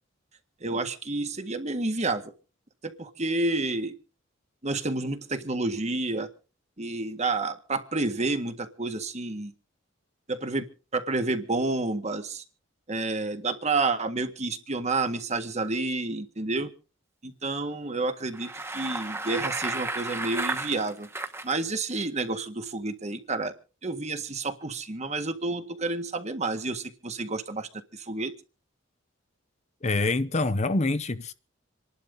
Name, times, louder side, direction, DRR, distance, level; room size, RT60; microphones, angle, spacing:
voice 1, 0.6-2.3 2.8-4.0 4.6-6.3 6.8-9.5 10.3-10.7 10.9-12.4 12.9-16.7 17.2-21.1 21.4-23.5 23.8-28.3, right 3 dB, 35° right, 1.7 m, -30 dB
Bicycle, 18.2-21.5, right 2 dB, 15° right, 1.4 m, -33 dB
voice 2, 29.8-31.3, left 2 dB, 35° left, 0.8 m, -25 dB
27.0 x 11.5 x 3.9 m
head